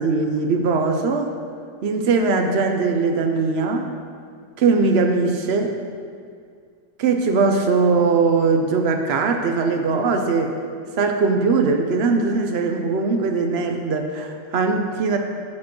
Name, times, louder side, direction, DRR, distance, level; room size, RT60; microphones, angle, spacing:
voice 1, 0.0-1.3 1.8-3.9 4.6-5.7 7.0-10.6 11.0-15.2, right 4 dB, 70° right, 4 dB, 0.6 m, -20 dB
7.6 x 7.4 x 6.0 m, 2.2 s
omnidirectional pair, 2.0 m